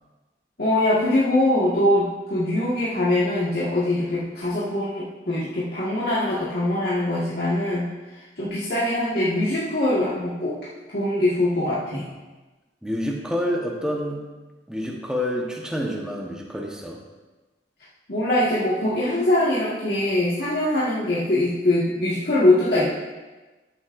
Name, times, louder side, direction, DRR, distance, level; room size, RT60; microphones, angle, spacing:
voice 1, 0.6-7.9 8.4-10.6 10.9-12.0 18.1-22.8, left 1 dB, 60° left, -10 dB, 1.8 m, -22 dB
voice 2, 12.8-14.2 14.7-17.0, equal, 5° right, -1 dB, 1.1 m, -28 dB
13.0 x 7.7 x 2.6 m, 1.2 s
head